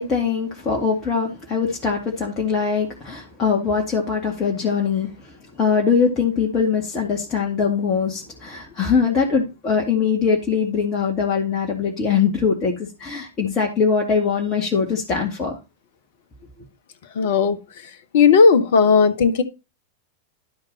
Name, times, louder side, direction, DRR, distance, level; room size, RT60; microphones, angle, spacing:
voice 1, 0.0-5.1 5.6-15.6, left 6 dB, 25° left, 2.1 m, -22 dB
voice 2, 17.1-17.6 18.1-19.4, left 5 dB, 55° left, 1.1 m, -15 dB
11.5 x 5.3 x 4.2 m
figure-of-eight pair, 90°, 0 cm